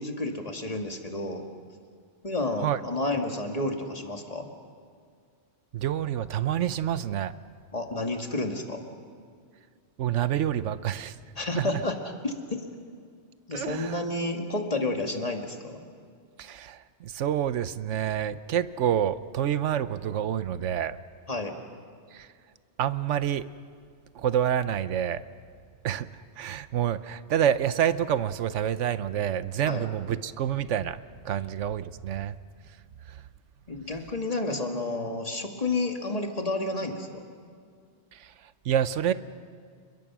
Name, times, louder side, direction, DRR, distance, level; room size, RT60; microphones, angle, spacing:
voice 1, 0.0-1.4 2.2-4.5 7.7-8.8 11.4-12.0 12.2-12.3 13.5-15.8 21.3-21.5 29.7-29.9 33.7-37.2, left 2 dB, 30° left, 3 dB, 2.1 m, -30 dB
voice 2, 5.7-7.3 10.0-11.2 11.5-11.8 13.5-14.0 16.4-21.0 22.1-22.3 22.8-23.5 24.1-25.2 25.8-26.1 26.4-31.0 31.2-32.4 33.1-33.2 38.1-39.1, right 10 dB, 90° right, 14 dB, 1.1 m, -28 dB
29.5 x 22.0 x 6.1 m, 2.1 s
omnidirectional pair, 1.2 m